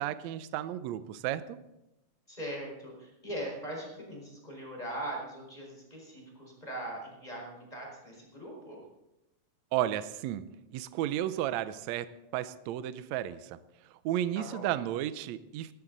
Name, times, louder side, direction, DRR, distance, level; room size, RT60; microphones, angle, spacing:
voice 1, 0.0-1.6 9.7-10.5 10.7-12.1 12.3-13.6 14.1-15.7, right 12 dB, 75° right, 13 dB, 1.7 m, -33 dB
voice 2, 2.3-8.8 14.3-14.7, right 1 dB, 10° left, -1 dB, 4.7 m, -40 dB
18.0 x 14.0 x 4.0 m, 0.94 s
omnidirectional pair, 3.7 m